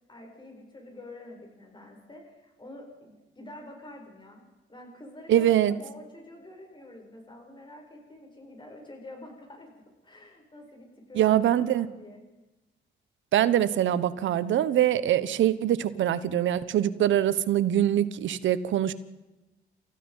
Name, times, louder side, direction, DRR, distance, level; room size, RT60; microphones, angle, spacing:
voice 1, 0.1-4.4 4.7-9.7 10.0-12.2, left 1 dB, 25° left, 1 dB, 7.8 m, -47 dB
voice 2, 5.3-5.7 11.1-11.9 13.3-18.9, right 11 dB, 75° right, 15 dB, 1.2 m, -23 dB
30.0 x 15.5 x 5.7 m, 1.0 s
cardioid pair, 90°, 20 cm